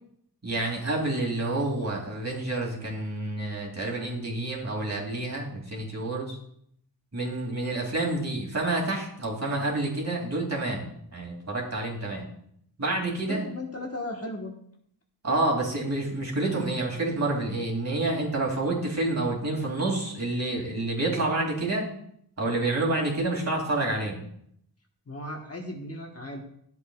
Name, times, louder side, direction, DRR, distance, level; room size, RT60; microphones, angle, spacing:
voice 1, 0.4-6.4 7.1-10.9 11.1-12.2 12.8-13.5 15.2-21.9 22.4-24.2, right 2 dB, 40° right, -2 dB, 2.6 m, -28 dB
voice 2, 13.3-14.5 25.1-26.4, left 1 dB, 35° left, 1 dB, 1.2 m, -36 dB
12.5 x 7.7 x 2.3 m, 0.69 s
wide cardioid pair, 100°, 42 cm